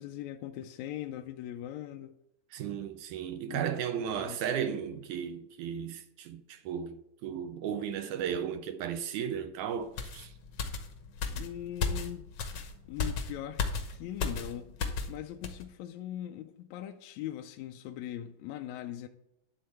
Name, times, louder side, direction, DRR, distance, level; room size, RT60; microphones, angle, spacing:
voice 1, 0.0-2.1 3.5-3.7 3.9-4.4 11.3-12.3 12.9-13.6 13.9-14.7 15.1-19.1, left 12 dB, 80° left, 1.8 m, -40 dB
voice 2, 2.5-10.3, right 8 dB, 80° right, 2.0 m, -35 dB
sound 1, 10.0-15.2 15.4-15.6, left 5 dB, 65° left, 1.6 m, -35 dB
11.5 x 4.0 x 7.7 m
omnidirectional pair, 3.6 m